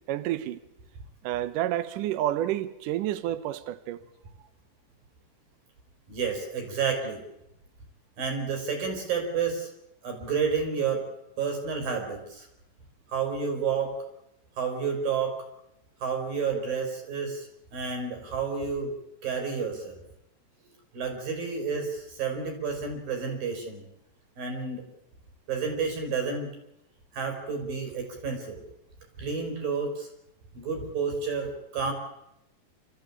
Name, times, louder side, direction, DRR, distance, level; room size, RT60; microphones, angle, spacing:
voice 1, 0.1-0.6 1.2-4.0, right 13 dB, 80° right, 1.9 m, -29 dB
voice 2, 6.1-7.2 8.2-9.7 10.0-11.1 11.4-12.5 13.1-13.9 14.6-15.3 16.0-18.9 19.2-20.0 20.9-23.9 24.4-24.8 25.5-26.5 27.1-28.6 29.2-30.1 30.5-31.9, right 5 dB, 55° right, 6.2 m, -30 dB
28.5 x 14.0 x 8.6 m
omnidirectional pair, 5.0 m